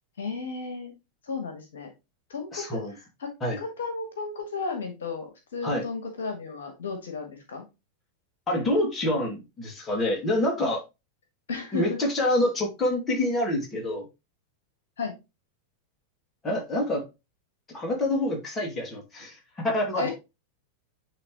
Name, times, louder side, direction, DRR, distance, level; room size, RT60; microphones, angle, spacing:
voice 1, 0.2-0.9 1.2-1.9 2.3-2.8 3.2-3.3 3.6-7.6 11.5-12.0 15.0-15.1 19.9-20.1, left 4 dB, 65° left, 1.5 m, -33 dB
voice 2, 2.5-3.0 3.4-3.6 5.6-5.9 8.5-10.8 11.7-14.1 16.4-17.1 17.7-20.1, left 1 dB, 15° left, 2.4 m, -27 dB
9.6 x 3.4 x 3.0 m
figure-of-eight pair, 90°, 0 cm